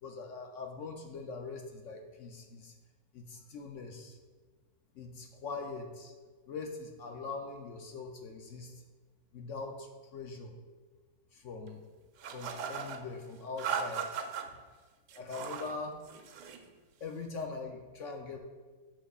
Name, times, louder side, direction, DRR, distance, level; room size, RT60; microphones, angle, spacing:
voice 1, 0.0-2.7 3.1-4.2 4.9-6.1 6.5-8.8 9.3-10.5 11.3-11.8 12.3-14.2 15.1-16.0 17.0-18.4, left 4 dB, 65° left, 3 dB, 0.8 m, -42 dB
sound 1, 12.2-13.0 13.6-14.4 15.1-15.7 16.0-16.6, right 7 dB, 85° right, 1.2 m, -37 dB
8.9 x 6.8 x 2.4 m, 1.4 s
omnidirectional pair, 1.7 m